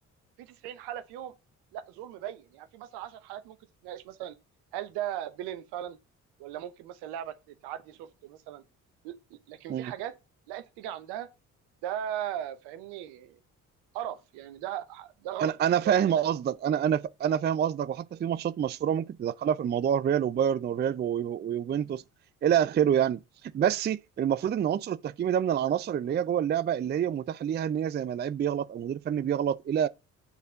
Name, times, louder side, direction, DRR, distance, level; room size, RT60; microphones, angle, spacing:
voice 1, 0.4-1.3 1.7-3.6 3.8-4.3 4.7-6.0 6.4-8.6 9.0-10.1 10.5-11.3 11.8-13.4 13.9-15.5 15.8-16.2, right 11 dB, 70° right, 1.1 m, -38 dB
voice 2, 15.4-22.0 22.4-23.2 23.5-29.9, right 9 dB, 25° right, 0.4 m, -27 dB
8.1 x 4.2 x 5.1 m
hypercardioid pair, 45°, 41 cm